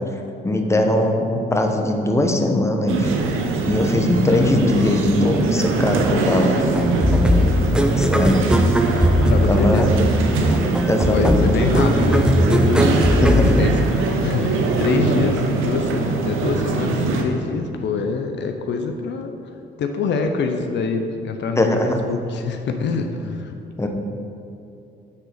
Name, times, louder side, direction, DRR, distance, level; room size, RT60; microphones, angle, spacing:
voice 1, 0.4-3.1 3.6-6.5 8.0-8.5 8.9-9.1 9.5-10.1 10.8-11.5 13.2-13.9 21.6-22.0 23.8-23.9, left 1 dB, 15° left, 3 dB, 0.8 m, -20 dB
sound 1, 2.9-17.2, right 3 dB, 90° right, 0.8 m, -22 dB
sound 2, 6.7-14.4, equal, 5° right, 0.5 m, -19 dB
voice 2, 9.3-9.9 11.1-13.2 13.6-19.3 19.8-23.6, left 4 dB, 65° left, 5 dB, 0.6 m, -25 dB
7.3 x 3.8 x 6.6 m, 2.7 s
cardioid pair, 90°, 20 cm